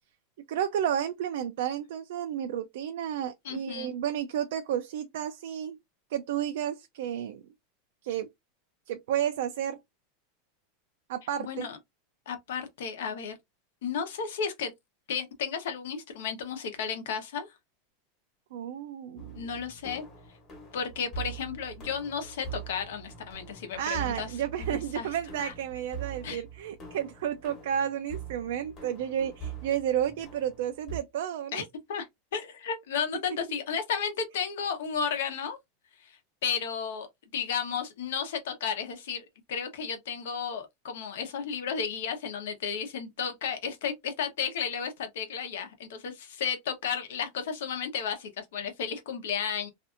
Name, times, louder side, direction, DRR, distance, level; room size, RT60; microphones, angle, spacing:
voice 1, 0.5-5.8 6.1-7.4 8.0-8.3 8.9-9.8 11.1-11.7 18.5-19.5 23.8-31.7, right 10 dB, 70° right, 0.3 m, -32 dB
voice 2, 3.4-3.9 11.4-11.8 12.3-13.3 13.8-14.7 15.1-17.5 19.4-20.0 20.7-24.3 24.6-25.1 25.4-25.5 26.2-26.4 31.5-32.1 32.3-35.6 36.0-37.1 37.3-49.7, left 7 dB, 80° left, 0.9 m, -33 dB
sound 1, 19.2-31.0, right 6 dB, 25° left, 1.0 m, -43 dB
2.6 x 2.4 x 2.4 m
supercardioid pair, 170°, 0 cm